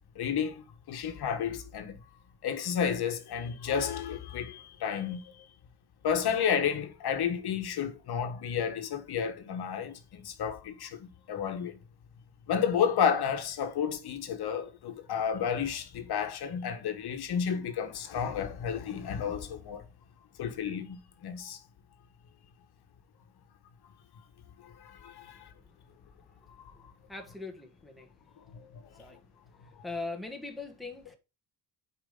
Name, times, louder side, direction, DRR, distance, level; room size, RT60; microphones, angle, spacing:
voice 1, 0.1-2.0 2.4-5.4 6.0-11.8 12.5-19.8 20.4-21.6 24.6-25.5 26.6-26.7 28.5-28.7, left 7 dB, 60° left, 1.4 m, -31 dB
voice 2, 27.1-28.1 29.0-29.2 29.8-31.2, left 3 dB, ahead, 1.5 m, -40 dB
8.8 x 5.0 x 3.8 m
cardioid pair, 120°, 44 cm